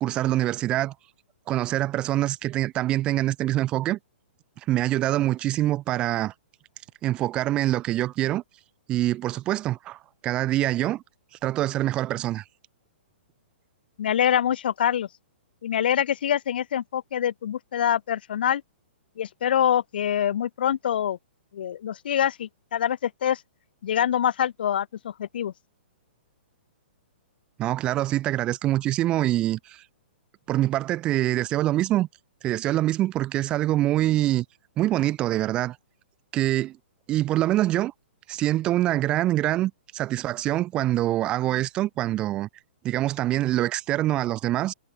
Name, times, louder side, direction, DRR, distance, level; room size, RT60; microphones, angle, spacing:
voice 1, 0.0-0.9 1.5-4.0 4.7-6.3 7.0-8.4 8.9-11.0 11.4-12.4 27.6-29.8 30.5-32.1 32.4-34.5 34.8-35.8 36.3-36.8 37.1-37.9 38.3-42.5 42.8-44.7, right 14 dB, 15° right, 0.5 m, -25 dB
voice 2, 14.0-15.1 15.6-18.6 19.2-21.2 21.5-23.4 23.8-25.5, left 10 dB, 55° left, 1.1 m, -25 dB
hypercardioid pair, 170°, 6 cm